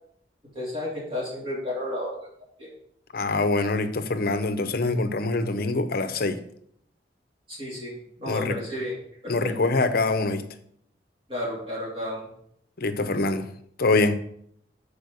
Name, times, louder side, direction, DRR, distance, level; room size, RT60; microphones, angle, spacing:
voice 1, 0.5-2.3 2.6-2.7 7.5-7.9 8.2-8.9 9.2-9.5 11.3-12.3, left 1 dB, 30° right, 2.6 m, -32 dB
voice 2, 3.1-6.4 8.3-8.6 9.3-10.5 12.8-13.5 13.8-14.2, left 3 dB, 60° left, 0.8 m, -24 dB
6.4 x 4.9 x 6.8 m
head